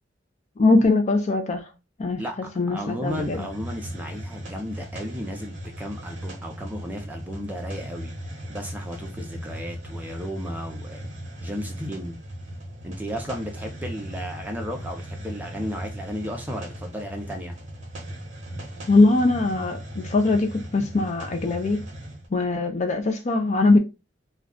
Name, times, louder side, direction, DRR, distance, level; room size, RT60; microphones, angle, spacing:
voice 1, 0.6-1.7 2.0-2.2 2.6-3.5 18.9-21.8 22.3-23.8, left 2 dB, 40° left, 0.4 m, -21 dB
voice 2, 2.2-8.1 8.5-11.0 11.4-12.2 12.8-17.6, equal, 10° right, 0.6 m, -34 dB
Hiss, 3.0-22.3, equal, 40° right, 0.8 m, -38 dB
2.3 x 2.3 x 3.6 m
head